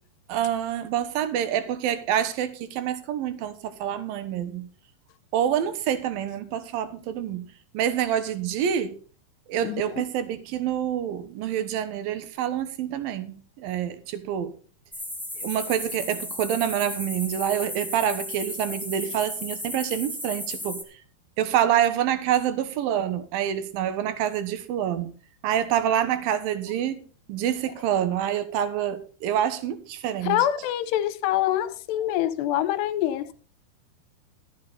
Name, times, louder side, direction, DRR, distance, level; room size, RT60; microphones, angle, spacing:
voice 1, 0.3-4.7 5.3-7.5 7.7-9.0 9.5-14.5 15.4-20.8 21.4-25.1 25.4-27.0 27.3-30.5, right 10 dB, 70° right, 2.7 m, -27 dB
voice 2, 9.6-10.0 30.2-33.3, left 12 dB, 80° left, 3.0 m, -25 dB
sound 1, 14.9-20.8, left 1 dB, ahead, 0.7 m, -35 dB
13.5 x 10.5 x 4.1 m
omnidirectional pair, 4.9 m